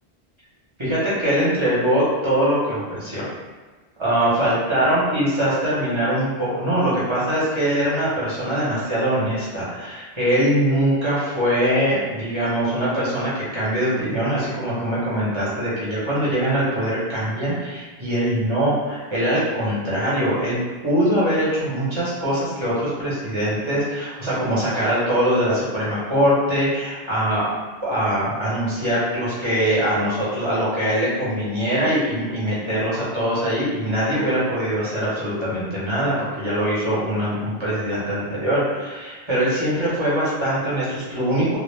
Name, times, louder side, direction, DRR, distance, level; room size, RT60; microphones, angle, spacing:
voice 1, 0.8-3.3 4.0-20.6 20.8-27.5 27.8-41.6, equal, 30° right, -10 dB, 0.8 m, -22 dB
2.2 x 2.1 x 3.2 m, 1.3 s
omnidirectional pair, 1.1 m